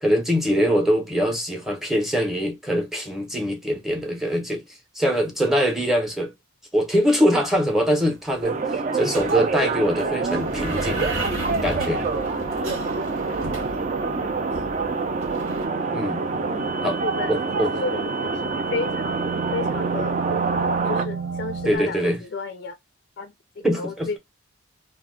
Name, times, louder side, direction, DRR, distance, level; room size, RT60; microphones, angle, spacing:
voice 1, 0.0-4.6 4.9-6.3 6.7-8.6 8.9-11.1 11.6-12.0 15.9-16.2 16.8-17.0 17.3-17.7 21.6-22.2 23.6-24.2, equal, ahead, 0.7 m, -23 dB
sound 1, 7.7-7.8 8.0-8.4 9.1-15.7, right 1 dB, 80° right, 1.2 m, -33 dB
sound 2, 8.4-21.0, right 4 dB, 35° right, 0.3 m, -26 dB
sound 3, 9.9-21.8, right 4 dB, 60° right, 0.8 m, -35 dB
voice 2, 14.1-14.7 16.3-17.3 17.7-19.2 19.5-22.8 23.2-24.2, left 3 dB, 50° left, 0.3 m, -33 dB
2.5 x 2.2 x 3.5 m
head